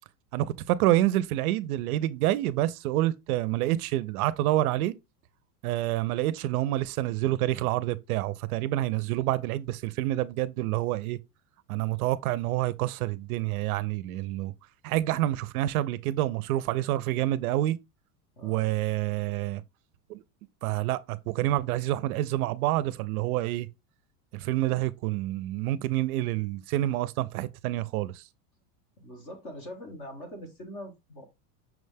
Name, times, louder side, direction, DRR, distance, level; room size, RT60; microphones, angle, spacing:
voice 1, 0.3-4.9 5.6-11.2 11.7-14.5 14.8-17.8 18.4-19.6 20.1-20.2 20.6-23.7 24.3-28.2, right 15 dB, 65° right, 0.5 m, -28 dB
voice 2, 18.4-18.7 29.0-31.3, equal, 20° left, 0.4 m, -42 dB
6.0 x 2.1 x 3.3 m
supercardioid pair, 180°, 47 cm